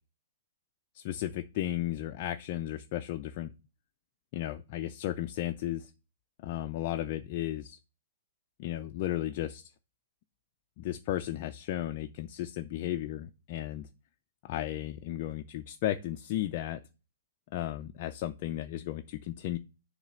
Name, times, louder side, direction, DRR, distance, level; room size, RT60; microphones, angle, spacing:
voice 1, 0.9-3.5 4.3-5.9 6.4-7.8 8.6-9.7 10.8-13.9 14.4-16.8 17.5-19.6, left 13 dB, 35° left, 7 dB, 0.4 m, -34 dB
7.2 x 3.2 x 6.2 m, 0.31 s
hypercardioid pair, 160°, 0 cm